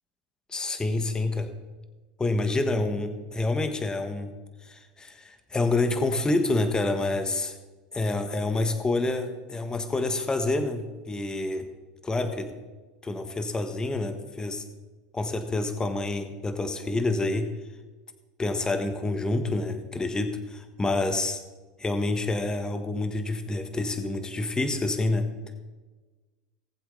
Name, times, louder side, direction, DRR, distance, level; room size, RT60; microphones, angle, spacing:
voice 1, 0.5-1.5 2.2-4.3 4.6-7.5 7.9-11.7 12.0-12.5 13.0-14.6 15.1-17.5 18.4-21.4 21.8-25.3, left 2 dB, 15° left, 8 dB, 1.5 m, -28 dB
19.0 x 7.7 x 3.9 m, 1.3 s
hypercardioid pair, 95°, 5 cm